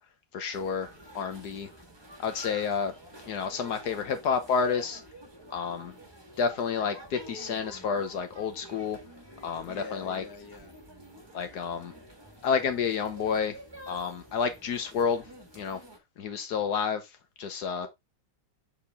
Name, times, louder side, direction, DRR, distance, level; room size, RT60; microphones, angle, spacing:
voice 1, 0.3-0.9 1.1-1.7 2.2-2.9 3.3-5.0 5.5-5.9 6.4-9.0 9.4-10.2 11.3-11.9 12.4-13.6 13.9-15.2 15.5-15.8 16.2-17.1 17.4-17.9, left 6 dB, 65° left, 1.4 m, -30 dB
sound 1, 0.5-16.0, equal, 15° right, 1.4 m, -48 dB
voice 2, 9.6-10.7 17.8-17.9, left 4 dB, 15° left, 1.0 m, -44 dB
7.3 x 4.5 x 3.5 m
omnidirectional pair, 1.9 m